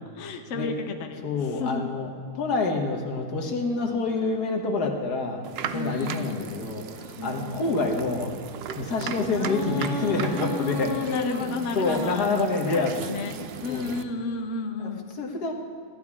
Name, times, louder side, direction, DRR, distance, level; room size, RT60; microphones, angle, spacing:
voice 1, 0.2-1.9 5.7-6.5 7.2-7.8 9.3-12.3 12.7-15.1, left 4 dB, 55° left, 5 dB, 1.0 m, -33 dB
voice 2, 1.2-5.4 5.7-8.3 8.8-13.1 13.7-14.0 15.2-15.5, left 3 dB, 80° left, 2 dB, 1.8 m, -27 dB
sound 1, 5.4-14.0, right 7 dB, 80° right, 0.5 m, -37 dB
15.0 x 11.5 x 3.6 m, 2.4 s
omnidirectional pair, 1.7 m